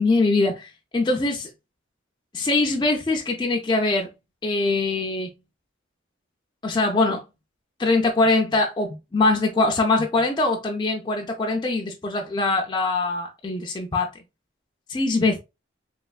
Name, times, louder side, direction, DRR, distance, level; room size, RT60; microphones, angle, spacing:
voice 1, 0.0-1.5 2.3-4.1 4.4-5.3 6.6-7.2 7.8-14.1 14.9-15.4, left 3 dB, 20° left, 0.4 m, -22 dB
3.2 x 3.0 x 2.3 m
head